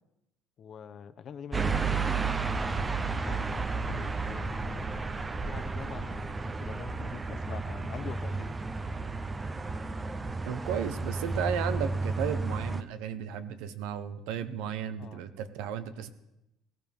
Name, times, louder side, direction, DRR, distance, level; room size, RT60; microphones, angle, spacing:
voice 1, 0.6-4.9 5.4-8.6 15.0-15.3, left 7 dB, 45° left, 11 dB, 0.9 m, -44 dB
sound 1, 1.5-12.8, right 4 dB, 20° right, 0.7 m, -32 dB
sound 2, 1.8-7.0, right 4 dB, 70° right, 4.2 m, -60 dB
voice 2, 10.5-16.1, right 8 dB, 90° right, 11 dB, 1.1 m, -34 dB
19.0 x 15.5 x 3.6 m, 0.90 s
cardioid pair, 130°, 0 cm